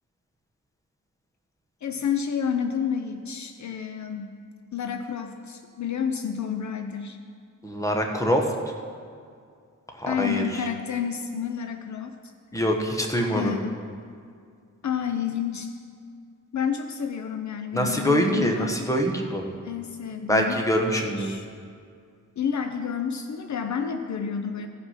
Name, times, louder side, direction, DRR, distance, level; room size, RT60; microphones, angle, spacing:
voice 1, 1.8-4.4 4.7-7.2 10.1-12.1 13.3-13.8 14.8-15.7 16.5-18.9 19.6-20.6 21.2-21.4 22.4-24.7, left 7 dB, 60° left, 6 dB, 0.7 m, -30 dB
voice 2, 7.6-8.5 10.0-10.4 12.5-13.6 17.7-19.5 20.3-21.3, equal, 10° left, 2 dB, 1.2 m, -24 dB
15.5 x 5.7 x 5.8 m, 2.2 s
wide cardioid pair, 110°, 32 cm